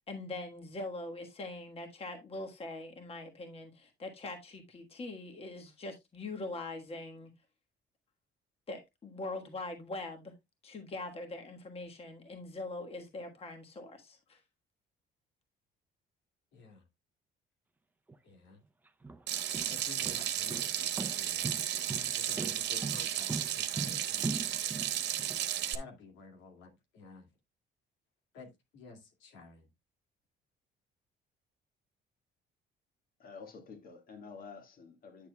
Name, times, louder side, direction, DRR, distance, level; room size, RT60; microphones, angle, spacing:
voice 1, 0.1-7.3 8.7-10.3 10.6-14.4, left 2 dB, 30° left, 1.4 m, -42 dB
voice 2, 16.5-16.8 18.2-18.6 19.7-21.5 22.2-24.6 25.7-27.3 28.3-29.7, left 3 dB, 85° left, 2.2 m, -52 dB
Walking Hard Floor, 18.1-18.2 18.9-25.4, right 3 dB, 10° right, 0.6 m, -39 dB
Water tap faucet / Sink (filling or washing), 19.3-25.7, right 11 dB, 65° right, 1.0 m, -34 dB
voice 3, 33.2-35.3, left 5 dB, 50° left, 1.8 m, -49 dB
9.5 x 6.7 x 2.2 m
cardioid pair, 130°, 19 cm